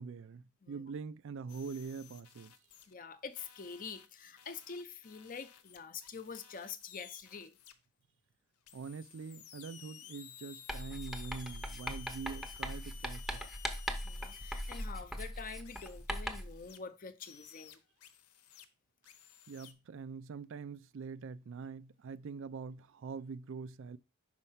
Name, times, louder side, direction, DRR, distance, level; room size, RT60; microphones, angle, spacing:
voice 1, 0.0-2.5 8.7-13.5 19.5-24.0, right 5 dB, 60° right, 0.4 m, -44 dB
sound 1, 1.5-2.9 3.3-7.7 8.7-14.8 15.6-16.8 17.2-18.7 19.0-19.7, left 10 dB, 80° left, 0.7 m, -55 dB
voice 2, 2.9-7.6 14.0-17.8, left 5 dB, 35° left, 0.6 m, -46 dB
Writing, 10.7-16.6, equal, ahead, 0.7 m, -40 dB
5.4 x 4.4 x 5.6 m
head